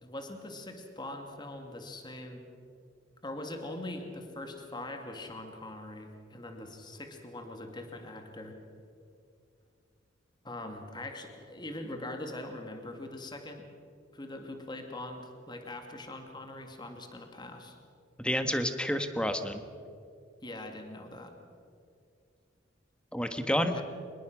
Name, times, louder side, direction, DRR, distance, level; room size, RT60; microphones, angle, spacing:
voice 1, 0.0-2.5 3.2-8.6 10.4-13.7 14.1-17.8 20.4-21.3 23.7-23.8, left 1 dB, 25° left, 4 dB, 2.1 m, -42 dB
voice 2, 18.2-19.6 23.1-23.8, equal, 5° left, 8 dB, 1.3 m, -29 dB
24.0 x 21.0 x 6.1 m, 2.4 s
head